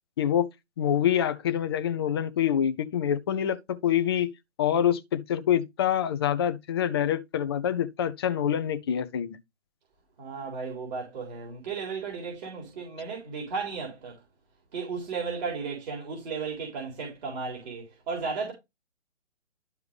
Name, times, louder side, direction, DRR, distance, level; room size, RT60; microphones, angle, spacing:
voice 1, 0.2-0.5 0.8-4.3 4.6-9.4, left 9 dB, 20° left, 0.6 m, -26 dB
voice 2, 10.2-14.2 14.7-18.5, right 5 dB, 35° right, 3.9 m, -34 dB
12.5 x 4.7 x 3.3 m
figure-of-eight pair, 140°, 36 cm